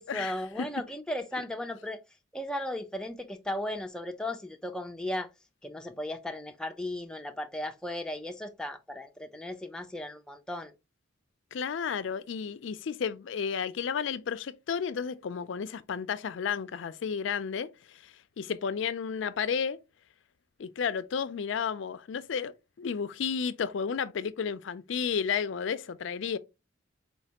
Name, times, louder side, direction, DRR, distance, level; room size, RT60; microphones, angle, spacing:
voice 1, 0.0-2.0 2.3-5.3 5.6-10.7, left 1 dB, 5° left, 0.5 m, -36 dB
voice 2, 11.5-19.8 20.6-26.4, left 6 dB, 65° left, 0.4 m, -32 dB
4.5 x 3.2 x 2.8 m
head